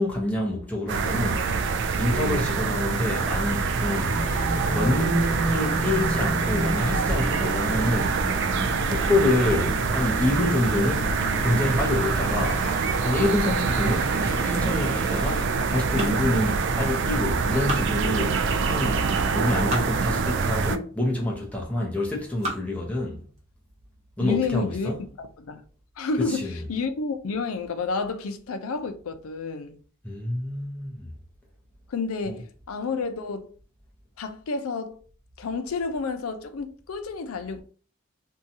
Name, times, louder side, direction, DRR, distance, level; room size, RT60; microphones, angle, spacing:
voice 1, 0.0-1.4 2.0-4.2 4.7-8.2 8.9-11.1 11.4-12.6 13.0-19.1 19.3-23.2 24.2-25.0 26.3-26.6 30.0-31.1 32.3-32.4, left 1 dB, 5° left, 0.6 m, -27 dB
sound 1, 0.9-20.8, right 4 dB, 55° right, 0.3 m, -25 dB
sound 2, 4.0-15.5, equal, 35° left, 0.9 m, -34 dB
sound 3, 15.8-17.0 17.4-18.5 19.2-19.9 20.6-20.7 21.4-21.8 22.2-22.8 23.4-23.5 23.8-23.9 24.3-24.7, right 1 dB, 30° right, 0.9 m, -36 dB
voice 2, 24.2-24.9 25.2-25.6 26.0-29.8 31.9-33.5 34.2-35.0 35.4-37.6, left 4 dB, 80° left, 0.5 m, -30 dB
2.7 x 2.2 x 2.7 m
head